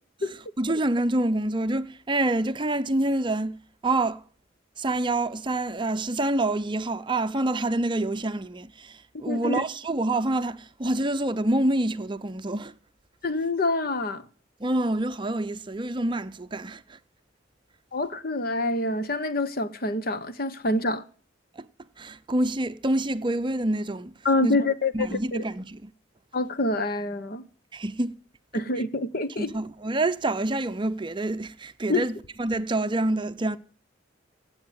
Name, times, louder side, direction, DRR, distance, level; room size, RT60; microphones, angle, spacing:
voice 1, 0.2-4.2 4.8-12.7 14.6-17.0 21.5-21.7 22.0-24.1 24.4-24.6 24.9-25.9 27.7-28.1 28.8-28.9 29.4-33.6, right 2 dB, 25° right, 0.6 m, -27 dB
voice 2, 9.1-9.6 13.2-14.2 17.9-21.0 24.2-25.2 26.3-27.5 28.5-29.5 31.9-32.0, left 2 dB, 50° left, 1.1 m, -26 dB
16.5 x 8.0 x 9.0 m
head